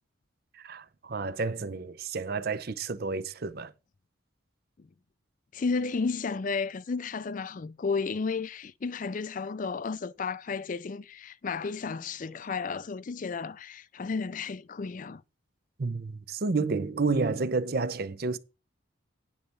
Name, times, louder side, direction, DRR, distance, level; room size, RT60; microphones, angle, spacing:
voice 1, 0.5-3.7 15.8-18.4, right 4 dB, 50° right, 0.6 m, -30 dB
voice 2, 5.5-15.2, left 4 dB, 40° left, 0.4 m, -33 dB
9.6 x 4.2 x 6.7 m
head